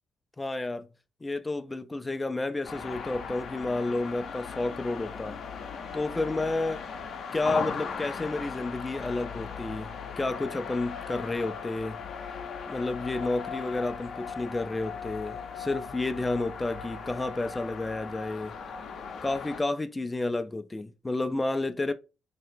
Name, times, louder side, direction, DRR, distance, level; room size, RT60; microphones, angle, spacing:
voice 1, 0.4-0.9 1.2-5.4 5.9-6.8 7.3-9.9 10.2-12.0 12.7-18.5 19.2-21.9, left 2 dB, 20° left, 0.3 m, -31 dB
sound 1, 2.6-19.6, left 6 dB, 60° left, 0.6 m, -38 dB
3.7 x 2.9 x 3.3 m
cardioid pair, 90°, 0 cm